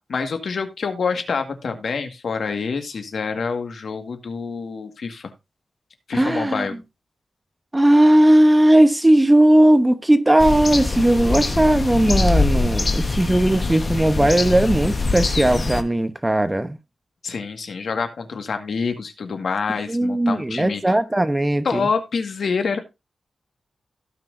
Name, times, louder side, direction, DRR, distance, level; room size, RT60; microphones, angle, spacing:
voice 1, 0.1-5.3 6.1-6.8 17.2-20.9 21.6-22.8, left 5 dB, 65° left, 1.9 m, -26 dB
voice 2, 6.1-6.7 7.7-16.8 19.9-21.9, right 1 dB, 15° right, 1.0 m, -17 dB
sound 1, 10.4-15.8, left 3 dB, 35° left, 1.3 m, -23 dB
16.5 x 6.1 x 2.7 m
wide cardioid pair, 120°, 0 cm